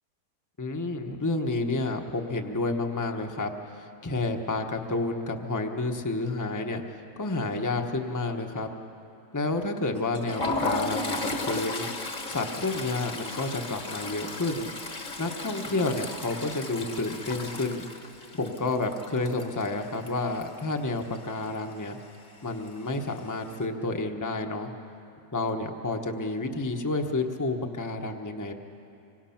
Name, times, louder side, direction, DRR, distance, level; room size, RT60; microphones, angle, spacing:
voice 1, 0.6-6.8 7.2-8.7 9.3-11.9 12.3-14.7 15.2-17.9 18.3-22.0 22.4-24.7 25.3-28.5, left 2 dB, 15° left, 4 dB, 0.9 m, -30 dB
Toilet flush, 10.0-20.7 21.0-21.2 21.5-21.7 22.7-23.2, left 2 dB, 30° left, 1.3 m, -35 dB
26.0 x 24.0 x 5.9 m, 2.8 s
omnidirectional pair, 1.7 m